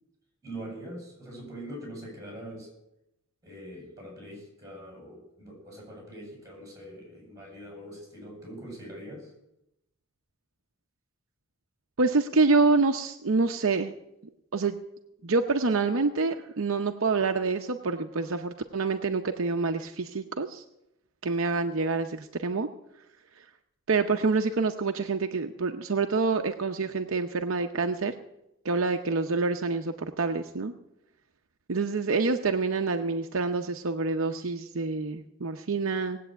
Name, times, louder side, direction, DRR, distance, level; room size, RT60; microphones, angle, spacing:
voice 1, 0.4-2.7 3.4-9.3 18.1-18.3, right 1 dB, 15° right, -2 dB, 7.8 m, -43 dB
voice 2, 12.0-13.9 14.5-14.8 15.2-20.6 21.2-22.7 23.9-28.1 28.6-30.7 31.7-36.2, right 4 dB, 60° right, 5 dB, 0.7 m, -27 dB
19.0 x 8.5 x 8.0 m, 0.87 s
head